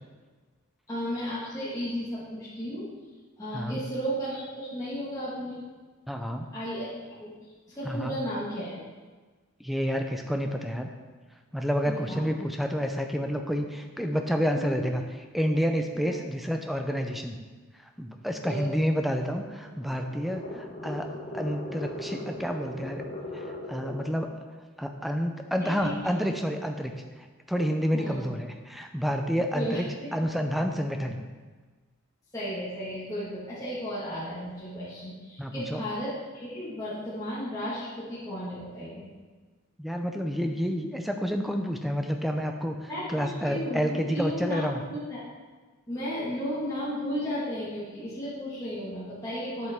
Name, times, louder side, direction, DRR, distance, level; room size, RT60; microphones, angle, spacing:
voice 1, 0.9-2.9 3.4-5.6 6.5-7.3 7.7-8.8 11.9-12.2 14.5-14.8 18.4-18.8 25.6-25.9 27.9-28.2 29.5-29.8 32.3-39.1 42.9-45.2 45.9-49.7, equal, 15° left, -11 dB, 1.7 m, -34 dB
voice 2, 6.1-6.5 7.8-8.2 9.6-10.9 11.5-15.0 15.3-17.4 18.0-23.0 23.3-24.3 24.8-29.9 30.1-31.2 35.4-35.8 39.8-44.8, equal, ahead, 4 dB, 0.5 m, -29 dB
sound 1, 19.4-24.2, left 1 dB, 40° left, 1.2 m, -39 dB
8.1 x 7.5 x 3.6 m, 1.4 s
head